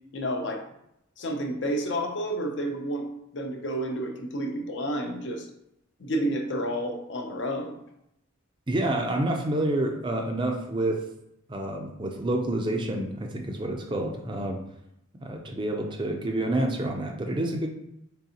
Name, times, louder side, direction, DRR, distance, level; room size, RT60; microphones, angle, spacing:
voice 1, 0.1-0.6 1.2-3.1 3.3-5.5 6.0-7.7, equal, 55° left, 3 dB, 0.6 m, -30 dB
voice 2, 8.7-11.0 11.5-14.6 15.2-17.7, right 1 dB, 25° right, 2 dB, 0.4 m, -28 dB
3.8 x 3.4 x 2.8 m, 0.80 s
head